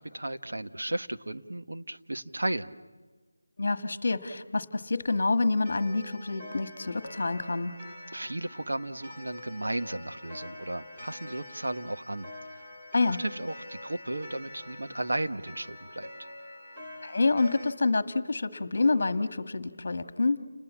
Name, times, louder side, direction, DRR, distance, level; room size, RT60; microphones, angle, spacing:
voice 1, 0.0-2.7 8.1-12.7 13.2-16.3, right 1 dB, 80° right, 8 dB, 1.4 m, -34 dB
voice 2, 3.6-7.8 12.9-13.2 17.0-20.4, left 3 dB, 40° left, 11 dB, 1.5 m, -27 dB
Clock, 5.6-17.7, left 2 dB, 10° right, 1.9 m, -46 dB
29.5 x 20.5 x 7.4 m, 1.4 s
figure-of-eight pair, 175°, 0 cm